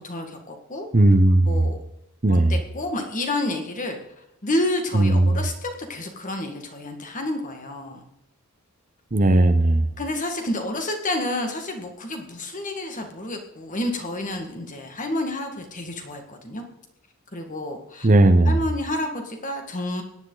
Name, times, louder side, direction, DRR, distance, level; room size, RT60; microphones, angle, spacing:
voice 1, 0.0-0.9 1.4-1.8 2.3-4.0 4.4-8.0 10.0-16.6 17.3-18.1 18.5-20.0, left 1 dB, 35° left, 1.9 m, -29 dB
voice 2, 0.9-1.7 2.2-2.5 4.9-5.3 9.1-9.9 18.0-18.6, right 1 dB, 35° right, 0.8 m, -17 dB
17.0 x 10.5 x 4.0 m
head